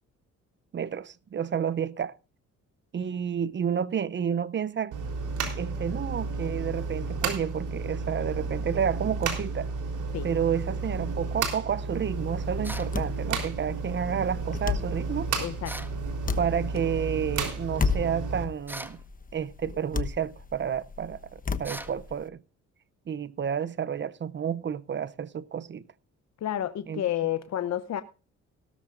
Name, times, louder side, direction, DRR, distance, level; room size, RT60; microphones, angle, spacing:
voice 1, 0.7-2.1 2.9-4.9 5.6-9.7 10.2-15.3 16.4-19.0 19.3-22.4 23.1-25.8 26.9-27.0, right 8 dB, 40° right, 0.6 m, -30 dB
sound 1, 4.9-18.4, right 4 dB, 80° right, 3.8 m, -32 dB
sound 2, 11.8-22.3, left 5 dB, 25° left, 1.1 m, -35 dB
sound 3, 12.6-13.0 15.6-16.0 18.7-19.0 21.6-22.0, right 1 dB, 5° right, 1.5 m, -39 dB
voice 2, 15.4-15.8 26.4-28.0, left 11 dB, 60° left, 0.8 m, -30 dB
17.0 x 13.0 x 2.5 m
cardioid pair, 90°, 30 cm